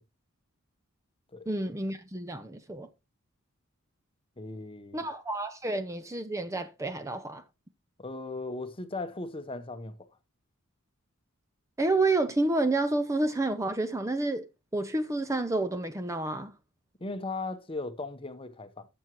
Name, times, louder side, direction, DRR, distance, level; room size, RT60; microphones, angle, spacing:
voice 1, 1.5-2.9 4.9-7.4 11.8-14.5 14.7-16.5, right 2 dB, 15° right, 0.6 m, -29 dB
voice 2, 4.4-5.1 8.0-10.0 17.0-18.9, left 3 dB, 25° left, 0.9 m, -37 dB
12.5 x 7.2 x 3.0 m
head